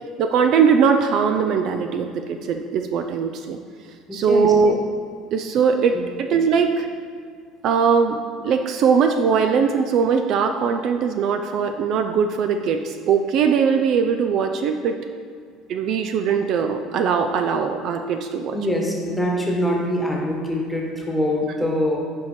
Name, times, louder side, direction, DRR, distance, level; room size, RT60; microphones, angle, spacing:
voice 1, 0.2-3.6 4.1-4.8 5.3-6.9 7.6-8.2 8.4-14.9 15.7-18.6, right 6 dB, 55° right, 6 dB, 0.4 m, -20 dB
voice 2, 4.1-4.5 5.7-6.0 18.5-22.0, left 1 dB, 5° left, -2 dB, 1.4 m, -24 dB
8.1 x 4.6 x 5.1 m, 2.1 s
cardioid pair, 130°, 0 cm